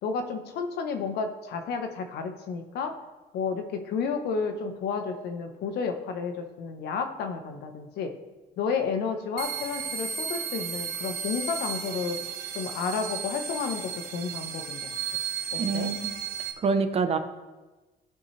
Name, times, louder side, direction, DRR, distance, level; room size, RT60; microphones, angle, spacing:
voice 1, 0.0-3.0 3.3-8.2 8.6-12.2 12.5-15.0 15.5-15.9, left 5 dB, 75° left, 7 dB, 1.0 m, -31 dB
sound 1, 9.4-16.5, right 7 dB, 70° right, 0.8 m, -34 dB
voice 2, 15.6-16.1 16.6-17.2, right 5 dB, 35° right, 8 dB, 0.8 m, -26 dB
14.5 x 5.4 x 3.2 m, 1.2 s
cardioid pair, 110°, 17 cm